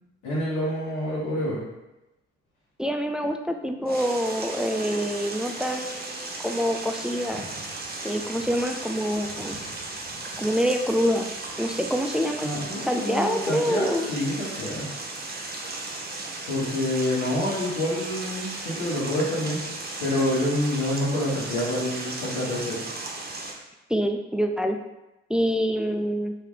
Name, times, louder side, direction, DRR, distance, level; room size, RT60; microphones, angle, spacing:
voice 1, 0.2-1.6 12.4-14.9 16.5-19.6 20.0-22.8, left 1 dB, 80° left, -9 dB, 1.2 m, -27 dB
voice 2, 2.8-7.4 8.0-9.6 10.4-11.3 11.6-12.5 12.8-14.1 23.9-24.8 25.3-26.3, equal, 5° right, 5 dB, 0.3 m, -26 dB
sound 1, 3.9-23.5, right 2 dB, 30° right, 0.9 m, -36 dB
3.1 x 2.8 x 3.8 m, 0.97 s
hypercardioid pair, 50°, 29 cm